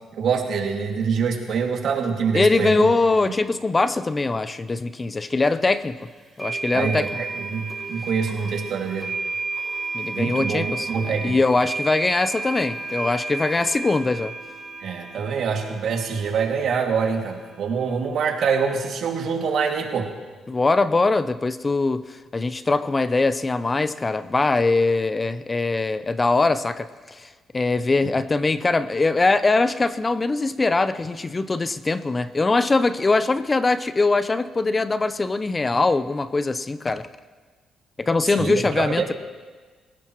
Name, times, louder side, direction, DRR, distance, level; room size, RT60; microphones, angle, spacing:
voice 1, 0.2-2.9 6.7-9.1 10.1-11.4 14.8-20.1 38.3-39.1, right 6 dB, 70° right, 1 dB, 2.4 m, -25 dB
voice 2, 2.3-6.0 6.4-7.1 9.9-14.3 20.5-27.3 27.5-37.1 38.0-39.1, left 3 dB, 25° left, 13 dB, 0.6 m, -22 dB
sound 1, 5.4-5.5 6.4-18.0, right 3 dB, 15° right, 6.8 m, -33 dB
26.0 x 16.5 x 3.1 m, 1.4 s
cardioid pair, 90°, 0 cm